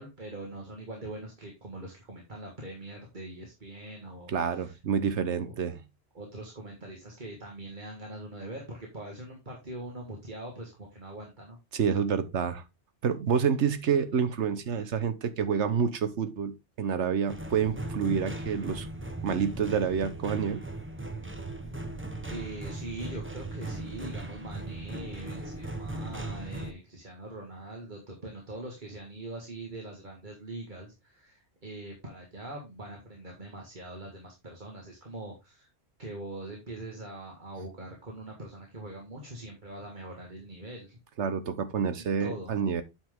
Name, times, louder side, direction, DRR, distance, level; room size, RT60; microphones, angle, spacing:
voice 1, 0.0-4.8 5.2-5.5 6.1-11.6 22.3-35.7 36.0-41.0 42.0-42.5, right 2 dB, 45° right, 2.0 m, -42 dB
voice 2, 4.3-5.8 11.7-12.6 13.0-18.9 19.2-20.6 41.2-42.8, right 7 dB, 85° right, 1.3 m, -28 dB
sound 1, 17.3-26.7, right 1 dB, 10° right, 0.8 m, -38 dB
8.8 x 5.8 x 3.6 m
omnidirectional pair, 1.2 m